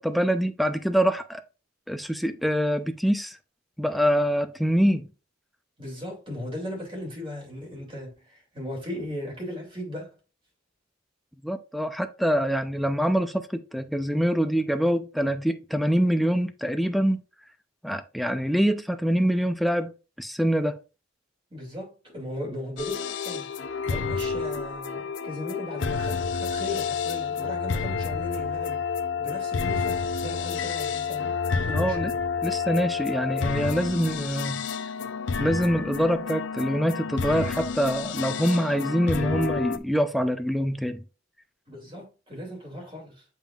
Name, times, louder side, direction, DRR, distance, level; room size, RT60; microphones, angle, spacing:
voice 1, 0.0-1.4 1.9-3.4 3.8-5.1 11.4-17.2 17.8-19.9 20.2-20.8 31.7-32.1 32.4-34.7 35.4-41.0, equal, ahead, 0.5 m, -25 dB
voice 2, 5.8-10.1 21.5-28.8 29.2-32.2 41.7-43.2, left 1 dB, 25° right, 2.6 m, -37 dB
sound 1, 22.8-39.8, left 5 dB, 65° left, 0.5 m, -29 dB
7.4 x 5.4 x 2.4 m
head